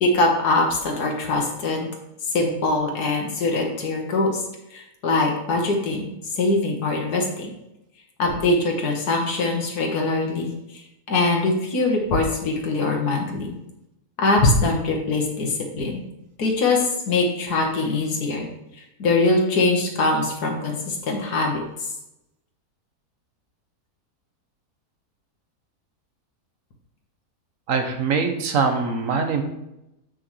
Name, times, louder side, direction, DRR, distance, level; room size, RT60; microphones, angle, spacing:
voice 1, 0.0-1.9 2.3-4.4 4.7-7.5 8.2-10.5 11.1-13.5 14.2-16.0 16.4-18.5 19.0-21.9, left 2 dB, 85° left, 1 dB, 1.9 m, -22 dB
voice 2, 27.7-29.4, right 5 dB, 60° right, 6 dB, 1.3 m, -23 dB
7.7 x 6.3 x 3.2 m, 0.87 s
omnidirectional pair, 1.7 m